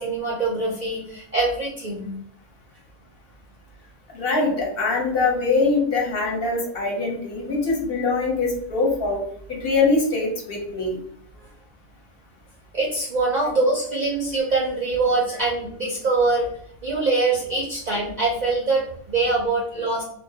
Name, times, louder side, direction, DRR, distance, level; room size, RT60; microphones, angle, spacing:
voice 1, 0.0-2.1 12.7-16.5 16.8-20.0, right 3 dB, 60° right, -4 dB, 0.4 m, -23 dB
voice 2, 4.1-9.2 9.5-11.0, left 3 dB, 60° left, -1 dB, 0.8 m, -23 dB
2.2 x 2.1 x 2.7 m, 0.64 s
omnidirectional pair, 1.3 m